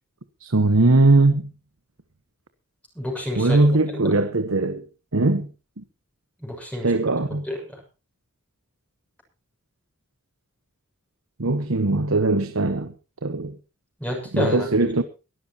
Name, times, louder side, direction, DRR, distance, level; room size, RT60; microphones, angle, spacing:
voice 1, 0.4-1.4 3.4-4.8 5.1-5.5 6.8-7.4 11.4-12.9 13.2-13.5 14.3-15.0, right 2 dB, 70° right, 1.2 m, -20 dB
voice 2, 2.9-3.7 4.0-4.1 6.4-6.9 7.3-7.6 14.0-14.9, left 1 dB, 5° left, 6.8 m, -29 dB
22.5 x 13.0 x 3.0 m
head